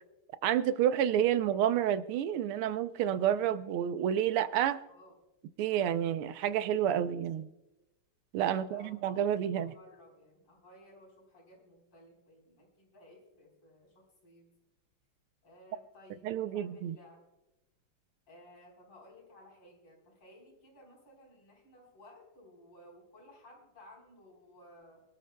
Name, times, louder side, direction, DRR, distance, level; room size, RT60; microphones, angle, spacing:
voice 1, 0.4-4.8 5.6-7.5 8.3-9.7 16.2-17.0, right 10 dB, 90° right, 1.6 m, -29 dB
voice 2, 8.4-8.9 9.4-14.5 15.4-17.2 18.3-25.0, left 1 dB, 90° left, 5.2 m, -57 dB
24.5 x 13.0 x 2.3 m
omnidirectional pair, 2.3 m